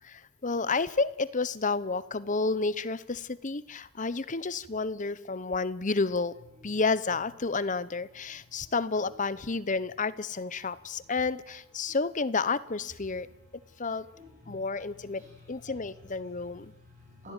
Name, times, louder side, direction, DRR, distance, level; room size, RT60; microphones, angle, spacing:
voice 1, 0.0-6.3 6.6-13.3 13.8-14.1 14.5-16.7, left 4 dB, 35° left, 16 dB, 0.8 m, -30 dB
voice 2, 8.3-9.1 9.8-9.9 10.6-11.1 11.8-12.0 13.3-17.3, left 2 dB, 35° right, -3 dB, 7.7 m, -54 dB
28.0 x 16.0 x 9.0 m, 0.96 s
head